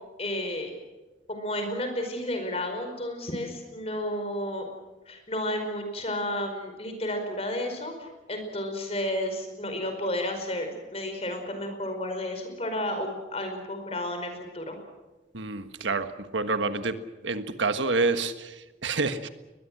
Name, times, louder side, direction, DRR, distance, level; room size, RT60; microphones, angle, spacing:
voice 1, 0.2-0.7 1.3-4.6 5.1-14.8, left 1 dB, 35° left, 6 dB, 5.0 m, -32 dB
voice 2, 15.3-17.0 17.2-19.3, right 3 dB, 85° right, 10 dB, 1.5 m, -28 dB
22.0 x 21.5 x 7.7 m, 1.1 s
head